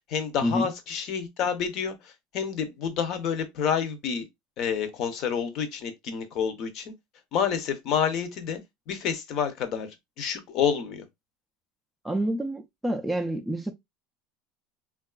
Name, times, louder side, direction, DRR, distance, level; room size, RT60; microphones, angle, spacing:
voice 1, 0.1-4.3 4.6-6.9 7.3-8.6 8.9-11.0, left 7 dB, 45° left, 0.6 m, -29 dB
voice 2, 12.0-13.7, equal, 5° right, 0.3 m, -28 dB
3.5 x 2.3 x 2.3 m
supercardioid pair, 155°, 0 cm